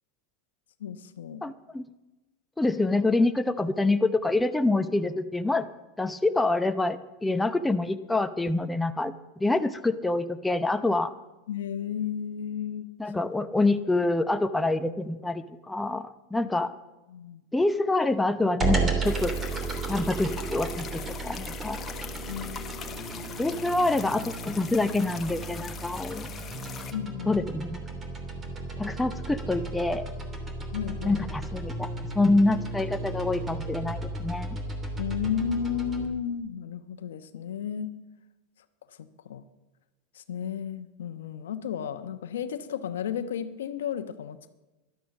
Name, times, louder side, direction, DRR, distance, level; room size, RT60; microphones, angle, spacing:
voice 1, 0.8-1.4 11.5-12.9 17.1-17.4 22.3-23.1 26.9-27.4 30.7-31.2 35.0-37.9 39.0-39.4 40.1-44.5, left 8 dB, 85° left, 10 dB, 1.0 m, -33 dB
voice 2, 1.4-1.9 2.6-5.7 6.0-9.1 9.4-11.1 13.0-16.7 17.5-19.3 19.9-21.8 23.4-26.3 27.3-27.8 28.8-30.0 31.0-34.6, left 2 dB, 5° left, 9 dB, 0.7 m, -26 dB
sound 1, 18.6-36.1, right 3 dB, 20° right, 2.9 m, -34 dB
sound 2, 19.0-26.9, left 7 dB, 30° left, 1.1 m, -42 dB
12.5 x 12.0 x 7.1 m, 1.1 s
supercardioid pair, 120°, 0 cm